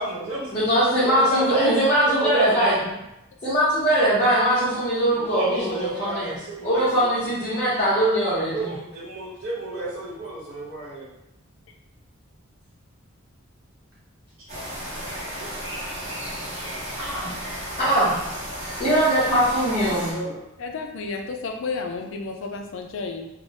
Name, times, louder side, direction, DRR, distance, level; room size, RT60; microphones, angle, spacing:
voice 1, 0.0-0.6 1.0-3.0 5.1-7.1 7.5-7.6 8.5-11.1 15.2-15.5 17.0-17.3 19.8-20.4, right 2 dB, 75° right, -8 dB, 0.9 m, -31 dB
voice 2, 0.5-2.8 3.4-6.3 6.6-8.7 17.8-18.1 18.8-20.2, right 1 dB, 30° left, -13 dB, 1.0 m, -21 dB
sound 1, 14.5-20.1, equal, 30° right, 0.7 m, -34 dB
voice 3, 20.6-23.3, left 4 dB, 60° left, 4 dB, 0.3 m, -31 dB
3.2 x 2.0 x 2.7 m, 0.89 s
head